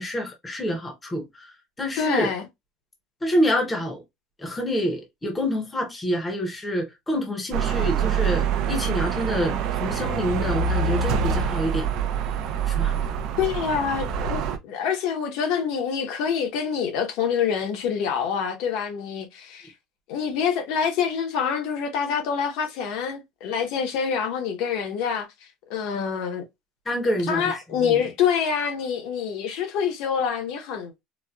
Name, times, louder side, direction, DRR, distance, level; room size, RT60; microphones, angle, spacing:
voice 1, 0.0-2.3 3.2-4.0 4.4-11.9 12.7-13.0 26.9-28.0, equal, 10° left, 0.8 m, -27 dB
voice 2, 2.0-2.4 13.4-19.7 20.1-25.3 25.7-26.4 27.3-31.0, left 7 dB, 55° left, 0.9 m, -26 dB
sound 1, 7.5-14.6, right 6 dB, 45° right, 0.5 m, -25 dB
4.2 x 2.3 x 2.3 m
cardioid pair, 180°, 0 cm